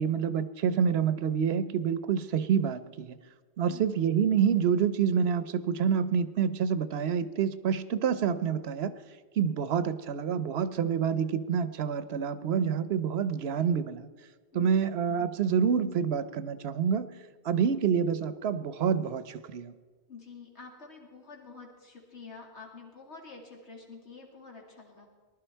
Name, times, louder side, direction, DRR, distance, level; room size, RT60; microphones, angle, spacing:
voice 1, 0.0-3.2 3.6-8.9 9.4-14.1 14.5-17.1 17.4-19.7, right 7 dB, 70° right, 13 dB, 0.9 m, -27 dB
voice 2, 14.5-14.8 20.1-25.1, left 4 dB, 80° left, -1 dB, 2.7 m, -48 dB
19.5 x 11.5 x 4.5 m, 1.5 s
omnidirectional pair, 1.1 m